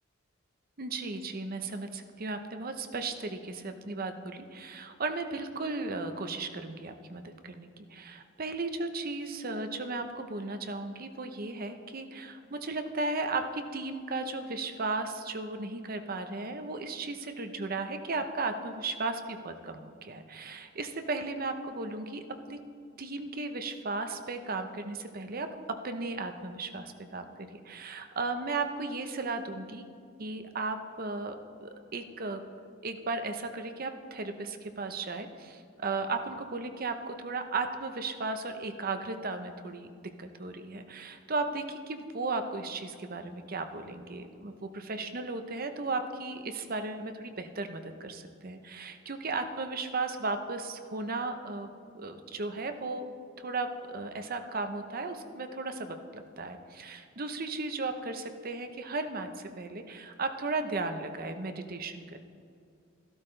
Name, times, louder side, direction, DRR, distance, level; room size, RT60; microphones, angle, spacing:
voice 1, 0.8-22.6 23.0-29.9 30.2-32.4 32.8-53.1 53.4-62.2, right 3 dB, 45° right, 7 dB, 0.8 m, -35 dB
14.0 x 12.5 x 3.3 m, 2.3 s
head